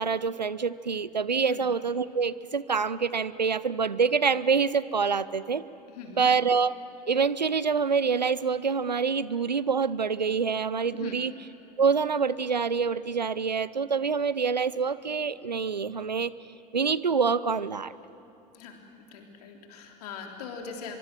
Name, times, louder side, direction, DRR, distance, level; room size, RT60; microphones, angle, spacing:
voice 1, 0.0-5.6 6.2-6.7 7.1-11.3 11.8-16.3 16.7-17.9, right 5 dB, 90° right, 18 dB, 0.6 m, -26 dB
voice 2, 5.9-6.3 11.0-11.2 18.5-18.8 19.1-21.0, left 6 dB, 65° left, 2 dB, 3.5 m, -41 dB
24.0 x 23.5 x 7.6 m, 2.8 s
figure-of-eight pair, 75°, 21 cm